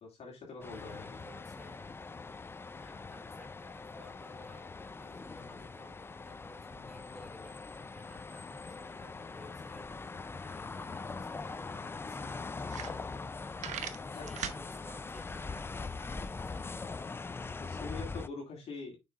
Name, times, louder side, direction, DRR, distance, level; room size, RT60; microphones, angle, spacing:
voice 1, 0.0-1.2 14.1-14.3 17.6-19.0, left 4 dB, 55° left, 2.4 m, -44 dB
sound 1, 0.6-18.3, left 4 dB, 20° left, 0.4 m, -42 dB
voice 2, 0.7-1.9 2.8-13.1 14.0-17.3, left 1 dB, ahead, 4.4 m, -56 dB
sound 2, 12.6-13.3 13.6-14.6, right 9 dB, 70° right, 0.9 m, -39 dB
7.0 x 5.7 x 2.4 m
cardioid pair, 90°, 12 cm